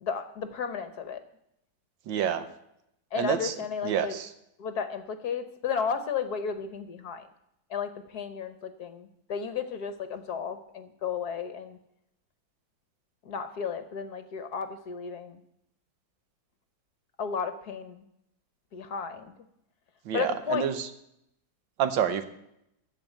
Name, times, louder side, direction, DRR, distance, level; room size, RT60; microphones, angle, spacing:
voice 1, 0.0-1.2 3.1-4.2 4.6-7.2 7.7-11.8 13.2-15.4 17.2-18.0 18.7-19.3 20.1-20.7, left 6 dB, 60° left, 10 dB, 1.3 m, -33 dB
voice 2, 2.1-2.4 3.2-3.5 3.8-4.3 20.1-20.9 21.8-22.2, right 8 dB, 75° right, 10 dB, 1.6 m, -28 dB
14.5 x 5.1 x 9.0 m, 0.78 s
omnidirectional pair, 2.1 m